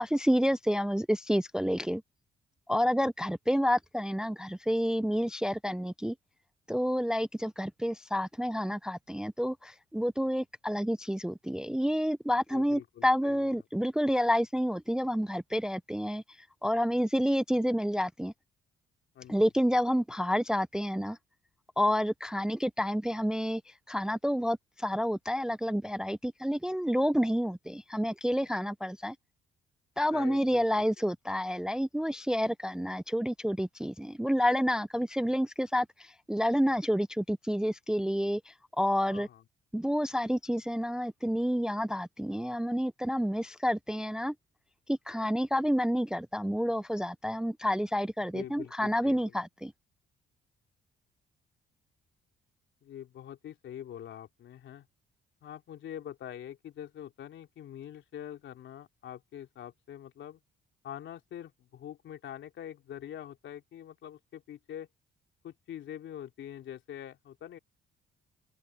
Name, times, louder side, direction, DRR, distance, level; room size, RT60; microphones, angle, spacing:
voice 1, 0.0-2.0 2.7-6.1 6.7-16.2 16.6-18.3 19.3-21.2 21.8-23.6 23.9-29.1 30.0-39.3 39.7-44.3 44.9-49.7, equal, 5° right, 0.4 m, -29 dB
voice 2, 12.5-13.5 19.1-19.5 30.1-30.6 31.0-31.1 39.1-39.4 48.3-49.4 52.8-54.9 55.4-60.4 60.8-64.9 65.4-67.6, left 10 dB, 70° left, 3.3 m, -44 dB
open air
cardioid pair, 90°, 20 cm